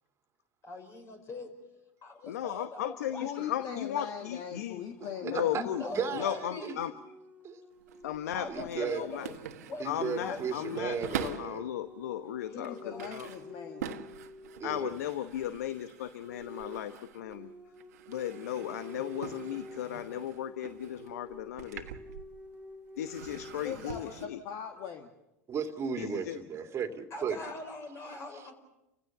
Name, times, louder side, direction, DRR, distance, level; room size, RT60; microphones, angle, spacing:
voice 1, 0.6-1.5 2.0-3.3 5.7-6.8 8.3-10.7 12.5-13.1 27.1-28.5, left 2 dB, 35° left, 4 dB, 5.4 m, -43 dB
voice 2, 2.3-4.8 5.2-5.8 6.1-6.9 8.0-9.3 9.8-11.0 11.2-13.3 14.6-17.5 18.1-21.9 23.0-24.4 25.9-26.4, left 11 dB, 75° left, 11 dB, 1.0 m, -36 dB
voice 3, 3.2-6.1 12.5-14.0 23.6-25.1, left 8 dB, 50° left, 4 dB, 1.9 m, -40 dB
voice 4, 5.0-6.7 7.4-7.6 8.5-9.0 9.8-11.7 14.6-15.0 25.5-27.4, right 6 dB, 30° right, 5 dB, 2.4 m, -35 dB
sound 1, 5.9-15.0 16.2-23.5, left 1 dB, 15° right, 3.5 m, -50 dB
sound 2, 7.7-11.7 12.2-17.5 17.8-22.6 23.0-24.3, right 8 dB, 75° right, 1.4 m, -45 dB
30.0 x 16.0 x 7.2 m, 0.90 s
hypercardioid pair, 95°, 9 cm